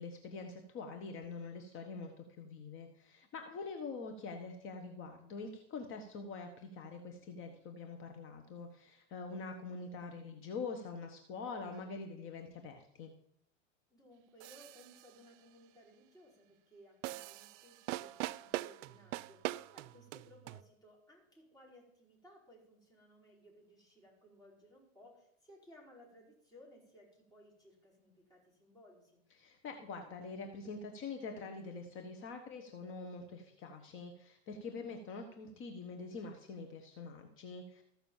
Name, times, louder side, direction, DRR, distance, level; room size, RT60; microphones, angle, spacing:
voice 1, 0.0-13.1 29.4-37.8, left 4 dB, 30° left, 5 dB, 1.1 m, -45 dB
voice 2, 3.5-4.0 13.9-29.2 34.6-34.9, equal, 10° left, -4 dB, 5.0 m, -61 dB
sound 1, 14.4-15.1 17.0-20.6, right 17 dB, 65° right, 0.5 m, -42 dB
14.0 x 5.9 x 7.2 m, 0.75 s
supercardioid pair, 130°, 39 cm